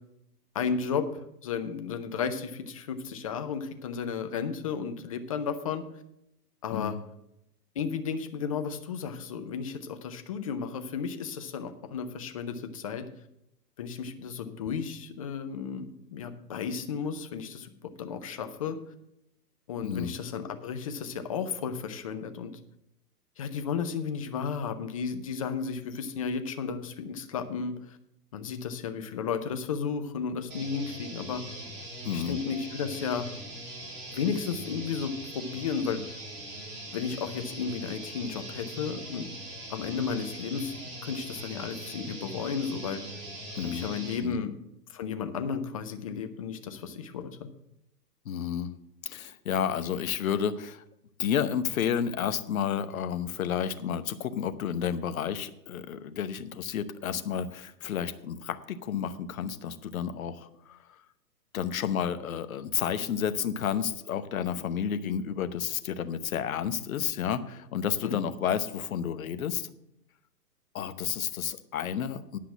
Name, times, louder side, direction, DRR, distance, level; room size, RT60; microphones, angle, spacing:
voice 1, 0.5-1.1 1.4-5.8 6.6-7.0 7.8-13.1 13.8-18.8 19.7-22.5 23.4-28.0 28.3-31.4 32.1-33.3 34.1-36.0 36.9-39.3 39.7-40.7 41.0-43.0 43.5-44.5 44.9-47.5 68.0-68.2, left 6 dB, 20° left, 8 dB, 0.5 m, -33 dB
sound 1, 30.5-44.2, right 1 dB, 20° right, 3.0 m, -41 dB
voice 2, 32.0-32.4 43.6-43.9 44.2-44.4 48.2-48.7 49.0-50.8 51.2-60.8 61.5-69.7 70.7-72.4, left 8 dB, 55° left, 11 dB, 1.0 m, -31 dB
10.5 x 5.8 x 7.4 m, 0.81 s
hypercardioid pair, 130°, 49 cm